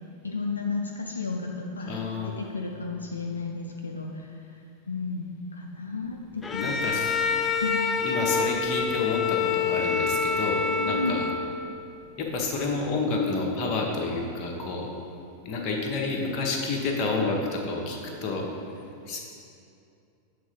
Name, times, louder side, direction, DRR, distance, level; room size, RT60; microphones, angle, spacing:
voice 1, 0.2-4.5 4.9-7.0 7.6-7.8 10.7-11.1, left 3 dB, 75° left, 1 dB, 0.4 m, -33 dB
voice 2, 1.8-2.3 6.5-7.1 8.0-11.3 12.2-14.9 15.4-18.5 19.1-19.2, left 3 dB, 35° left, 0 dB, 1.0 m, -29 dB
Bowed string instrument, 6.4-11.7, left 5 dB, 15° left, 0.4 m, -27 dB
7.7 x 3.6 x 5.2 m, 2.5 s
figure-of-eight pair, 90°, 0 cm